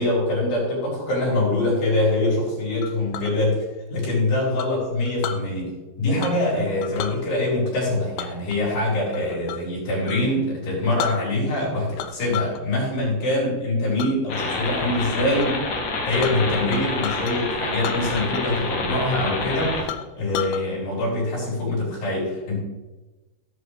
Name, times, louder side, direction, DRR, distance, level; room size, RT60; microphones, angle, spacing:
voice 1, 0.0-3.6 3.9-15.6 16.1-19.7 20.2-22.6, left 2 dB, 70° left, -6 dB, 6.4 m, -24 dB
Chink clink, 2.8-3.3 4.6-5.4 6.2-6.5 6.8-7.2 8.2-9.7 10.0-10.2 10.7-10.8 11.0-11.6 12.0-12.6 13.0-13.3 14.0-14.1 14.6-15.0 15.4-15.5 15.7-17.4 17.8-18.6 18.8-18.9 19.4-19.5 19.9-20.6, left 10 dB, 85° left, 3.0 m, -33 dB
sound 1, 14.3-19.8, left 3 dB, 55° left, 2.3 m, -28 dB
16.5 x 7.7 x 3.3 m, 1.1 s
omnidirectional pair, 5.0 m